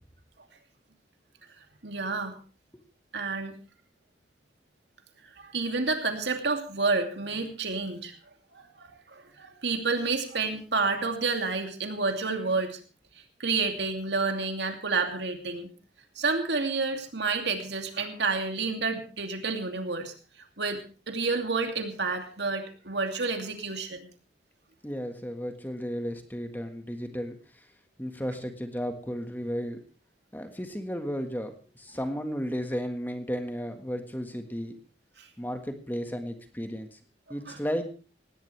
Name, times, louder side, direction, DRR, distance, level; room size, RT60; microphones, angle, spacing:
voice 1, 1.8-2.3 3.1-3.6 5.4-8.1 8.5-12.8 13.4-15.7 16.2-20.1 20.6-24.1 35.2-35.3 37.5-37.6, right 4 dB, 80° right, 5 dB, 2.6 m, -29 dB
voice 2, 24.8-27.6 28.0-29.8 30.3-34.7 35.4-37.0 37.3-37.9, equal, 10° left, 6 dB, 1.6 m, -34 dB
18.5 x 17.0 x 3.4 m, 0.36 s
head